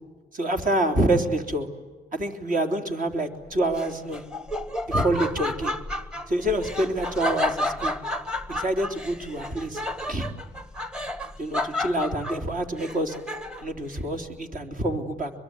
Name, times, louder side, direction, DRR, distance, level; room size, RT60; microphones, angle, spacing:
voice 1, 0.3-1.7 2.1-4.2 4.9-5.7 6.3-7.9 8.5-9.8 10.1-10.3 11.4-13.2 13.6-15.3, right 1 dB, 45° right, 4 dB, 3.6 m, -26 dB
Laughter, 3.7-13.8, left 1 dB, 5° right, 1.6 m, -31 dB
25.0 x 23.0 x 9.7 m, 1.4 s
cardioid pair, 90°, 20 cm